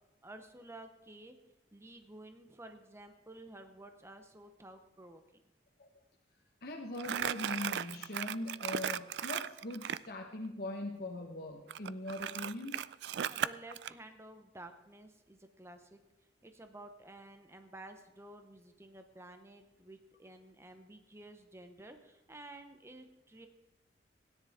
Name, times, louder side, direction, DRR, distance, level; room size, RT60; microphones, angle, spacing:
voice 1, 0.2-1.4 1.7-5.2 13.3-16.0 16.4-23.5, right 2 dB, 15° right, 7 dB, 0.7 m, -52 dB
voice 2, 6.6-12.8, left 1 dB, 55° left, 1 dB, 1.0 m, -41 dB
Crumpling crinkling, 7.0-10.1 11.7-13.9, right 9 dB, 70° right, 0.3 m, -36 dB
16.5 x 10.0 x 3.5 m, 1.0 s
head